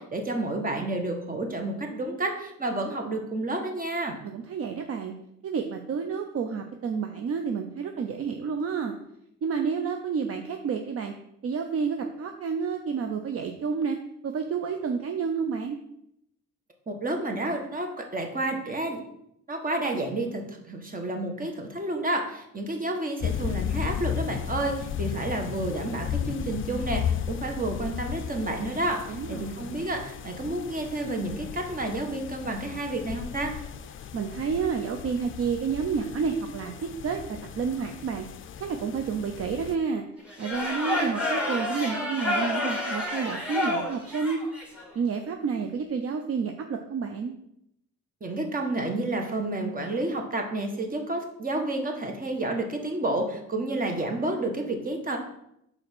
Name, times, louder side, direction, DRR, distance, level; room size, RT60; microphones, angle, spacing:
voice 1, 0.0-4.2 16.9-19.0 19.5-33.5 48.2-55.2, right 2 dB, 30° right, 4 dB, 1.5 m, -30 dB
voice 2, 4.2-5.1 5.4-8.9 9.4-11.1 11.4-14.0 14.2-15.8 29.1-29.9 34.1-37.2 37.5-38.3 38.6-40.0 40.4-44.4 44.7-47.3, right 6 dB, 50° right, 5 dB, 0.7 m, -30 dB
sound 1, 23.2-39.8, left 9 dB, 45° left, 0.4 m, -35 dB
sound 2, 40.3-44.9, left 1 dB, 5° right, 2.4 m, -29 dB
5.2 x 4.3 x 6.1 m, 0.77 s
cardioid pair, 90°, 30 cm